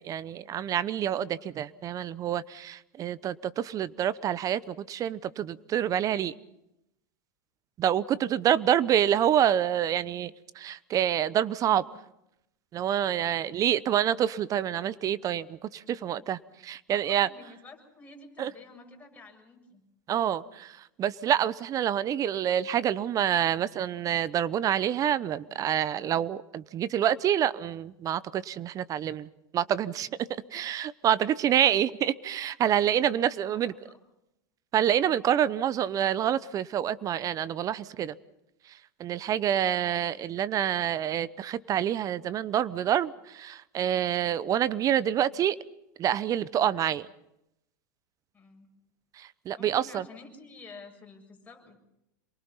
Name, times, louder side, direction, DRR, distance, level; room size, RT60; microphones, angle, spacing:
voice 1, 0.0-6.3 7.8-11.8 12.7-17.3 18.4-18.5 20.1-33.7 34.7-38.1 39.0-45.6 46.0-47.1 49.2-50.0, right 10 dB, 35° right, 18 dB, 0.9 m, -27 dB
voice 2, 16.9-19.8 33.0-33.1 33.5-34.0 48.3-48.7 49.6-51.8, left 3 dB, 15° left, 1 dB, 7.3 m, -50 dB
27.5 x 23.5 x 5.7 m, 0.85 s
hypercardioid pair, 105°, 10 cm